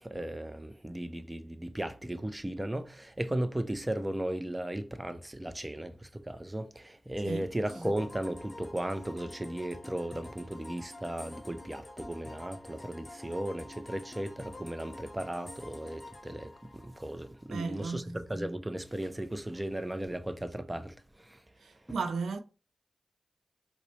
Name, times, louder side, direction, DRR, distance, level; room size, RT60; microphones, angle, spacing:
voice 1, 0.0-21.4 21.9-22.0, right 1 dB, 20° right, 0.5 m, -36 dB
sound 1, 7.7-17.4, left 2 dB, 35° left, 0.8 m, -48 dB
voice 2, 17.5-18.0 21.6-22.4, right 4 dB, 90° right, 0.3 m, -34 dB
4.3 x 2.1 x 3.0 m
cardioid pair, 40°, 0 cm